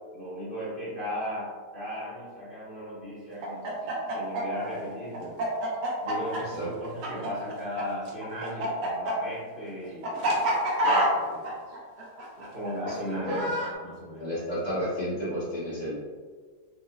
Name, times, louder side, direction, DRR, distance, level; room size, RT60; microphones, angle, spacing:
voice 1, 0.1-5.4 6.0-10.4 10.8-11.5 12.4-14.3, equal, 40° right, -10 dB, 0.8 m, -37 dB
Chicken rooster, 3.4-13.7, right 1 dB, 90° right, 1.4 m, -28 dB
voice 2, 6.4-6.7 12.8-13.5 14.2-15.9, equal, 30° left, -9 dB, 1.0 m, -32 dB
5.0 x 2.1 x 2.2 m, 1.5 s
omnidirectional pair, 1.8 m